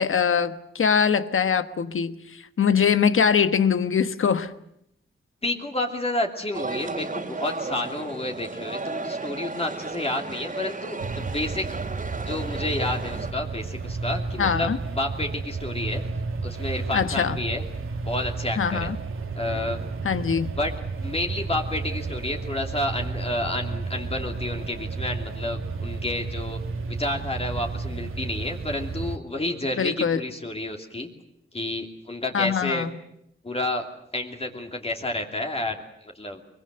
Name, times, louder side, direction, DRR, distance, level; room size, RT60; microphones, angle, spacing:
voice 1, 0.0-4.5 14.4-14.8 16.9-17.4 18.6-19.0 20.0-20.5 29.8-30.2 32.3-32.9, left 7 dB, 75° left, 12 dB, 1.3 m, -22 dB
voice 2, 5.4-11.7 12.3-16.0 16.4-17.6 18.0-18.9 19.3-19.8 20.4-20.7 21.0-26.6 26.9-31.1 31.5-32.9 33.4-33.9 34.1-36.4, left 1 dB, 30° left, 3 dB, 2.8 m, -30 dB
sound 1, 6.5-13.3, right 3 dB, 40° right, 2.8 m, -34 dB
sound 2, 11.0-29.2, right 4 dB, 80° right, 1.8 m, -32 dB
24.0 x 22.5 x 7.9 m, 0.76 s
wide cardioid pair, 115°, 21 cm